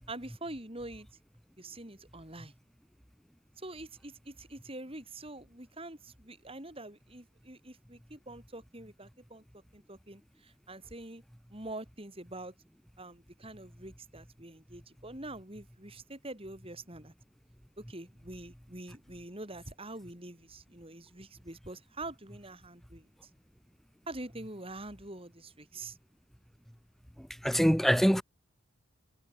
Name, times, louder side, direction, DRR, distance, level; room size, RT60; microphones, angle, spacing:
voice 1, 0.1-1.1 1.6-2.5 3.6-9.4 9.7-11.2 11.5-12.5 13.0-17.1 17.8-23.3 24.1-26.0, right 2 dB, 25° right, 5.7 m, -45 dB
voice 2, 27.2-28.2, equal, ahead, 4.7 m, -25 dB
head